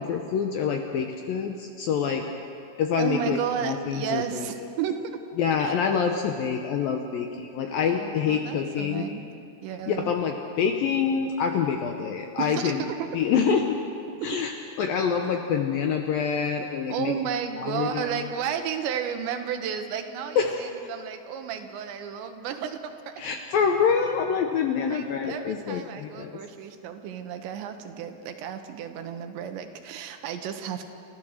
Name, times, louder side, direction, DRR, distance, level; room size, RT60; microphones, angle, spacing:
voice 1, 0.0-2.3 2.8-4.5 5.4-9.1 9.9-12.9 13.1-13.8 14.2-14.5 14.8-17.1 17.6-18.1 20.4-20.6 23.2-26.4, left 6 dB, 75° left, 3 dB, 2.2 m, -26 dB
voice 2, 3.0-5.2 5.6-5.7 7.9-9.2 9.6-10.1 12.4-12.9 16.9-23.1 24.9-30.8, right 8 dB, 80° right, 7 dB, 3.3 m, -32 dB
29.5 x 14.5 x 6.4 m, 2.6 s
omnidirectional pair, 5.2 m